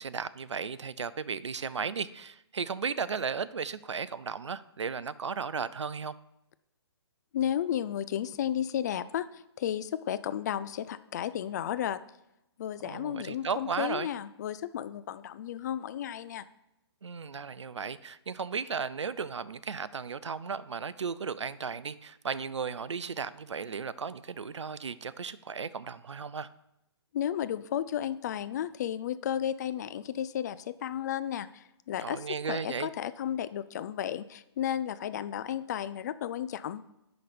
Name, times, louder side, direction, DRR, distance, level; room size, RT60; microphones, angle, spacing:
voice 1, 0.0-6.1 12.8-14.1 17.0-26.5 32.0-32.9, right 6 dB, 85° right, 17 dB, 0.4 m, -35 dB
voice 2, 7.3-12.0 12.6-16.5 27.1-36.8, left 10 dB, 40° left, 14 dB, 0.4 m, -33 dB
10.5 x 4.0 x 5.1 m, 0.86 s
figure-of-eight pair, 135°, 14 cm